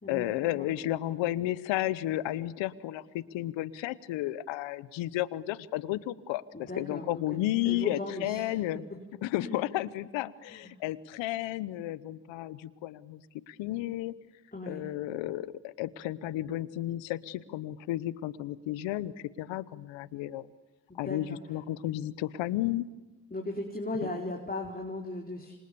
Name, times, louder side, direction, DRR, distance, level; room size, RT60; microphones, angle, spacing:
voice 1, 0.1-8.8 9.2-13.2 13.5-14.1 14.7-19.1 19.4-20.5 21.0-22.9 24.0-24.1, left 14 dB, 85° left, 18 dB, 1.0 m, -33 dB
voice 2, 6.5-7.4 7.6-8.5 9.4-9.6 10.5-10.7 14.5-14.9 20.9-21.4 23.3-25.6, left 2 dB, 20° left, 0 dB, 4.4 m, -37 dB
29.0 x 26.0 x 7.0 m, 1.1 s
hypercardioid pair, 40°, 44 cm